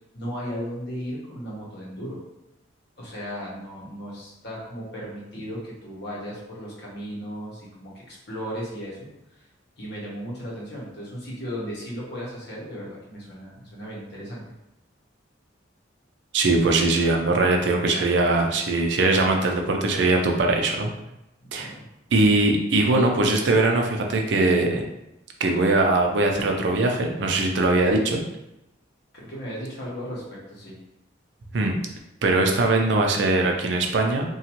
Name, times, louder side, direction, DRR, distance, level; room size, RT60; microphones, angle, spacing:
voice 1, 0.1-2.2 3.0-9.5 9.8-14.5 21.4-21.9 29.1-30.8, equal, 60° left, -5 dB, 1.0 m, -36 dB
voice 2, 16.3-20.9 21.5-21.7 22.1-24.8 25.4-28.2 31.5-31.7 32.2-34.2, right 2 dB, 60° right, 2 dB, 0.4 m, -21 dB
2.8 x 2.3 x 2.9 m, 0.90 s
head